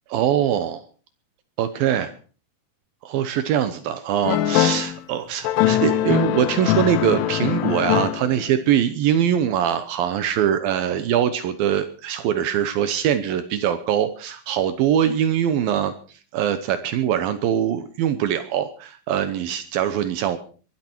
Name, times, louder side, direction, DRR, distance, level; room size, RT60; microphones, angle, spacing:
voice 1, 0.1-0.8 1.6-2.1 3.1-15.9 16.3-20.4, right 9 dB, 80° right, 11 dB, 2.1 m, -22 dB
sound 1, 4.3-5.0 5.5-8.5, left 12 dB, 85° left, 3.4 m, -22 dB
22.5 x 12.0 x 4.5 m, 0.39 s
omnidirectional pair, 5.6 m